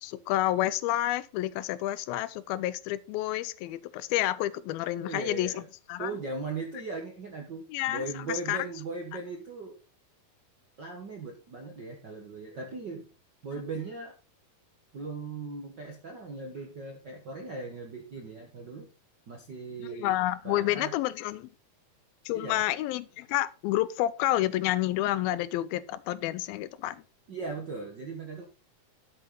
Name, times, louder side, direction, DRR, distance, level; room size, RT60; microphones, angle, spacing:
voice 1, 0.0-5.6 5.9-6.1 7.7-8.7 19.8-21.5 22.3-27.0, left 15 dB, 85° left, 2.5 m, -29 dB
voice 2, 5.0-5.7 6.0-9.8 10.8-13.1 13.4-14.1 14.9-18.9 19.3-20.2 20.4-20.9 22.3-22.6 27.3-28.4, right 3 dB, 60° right, 1.1 m, -38 dB
11.5 x 7.7 x 3.8 m
omnidirectional pair, 4.2 m